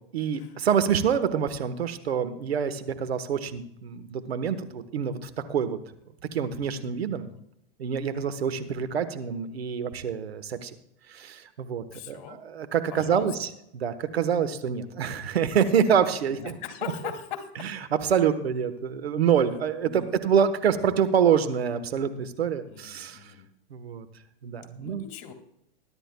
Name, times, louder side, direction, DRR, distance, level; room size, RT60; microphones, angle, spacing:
voice 1, 0.1-5.8 6.3-7.3 7.8-10.7 11.1-16.5 16.8-16.9 17.6-23.3 23.7-24.1 24.4-25.0, right 7 dB, 85° right, 11 dB, 1.2 m, -26 dB
voice 2, 11.9-12.4 12.9-13.3 16.3-17.5 19.8-20.2 22.7-23.5 24.8-25.3, left 9 dB, 55° left, 5 dB, 2.3 m, -40 dB
21.0 x 11.0 x 2.2 m, 0.79 s
hypercardioid pair, 115°, 30 cm